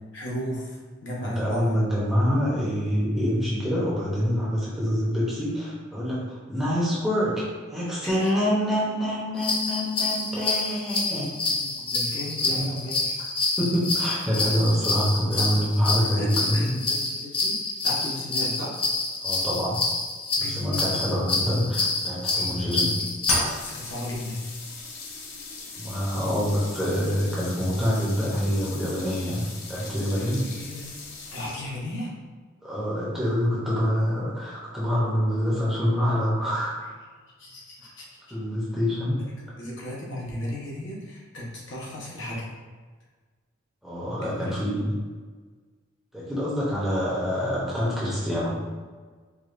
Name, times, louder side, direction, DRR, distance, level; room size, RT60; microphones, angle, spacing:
voice 1, 0.1-1.7 8.1-8.3 11.5-13.1 15.5-18.8 20.4-21.2 22.4-23.1 23.6-24.5 29.8-30.9 31.3-32.1 37.4-38.0 39.2-42.5 44.2-44.9, left 1 dB, 60° left, -5 dB, 0.9 m, -36 dB
voice 2, 1.2-11.3 12.4-12.7 13.6-16.8 19.2-19.8 20.4-23.0 25.8-30.5 32.6-36.9 38.3-39.3 43.8-44.9 46.1-48.6, equal, ahead, -8 dB, 0.8 m, -26 dB
sound 1, 9.4-23.4, left 3 dB, 25° left, 0.4 m, -27 dB
sound 2, 23.2-31.8, left 2 dB, 85° left, 0.6 m, -36 dB
4.8 x 2.4 x 2.5 m, 1.4 s
head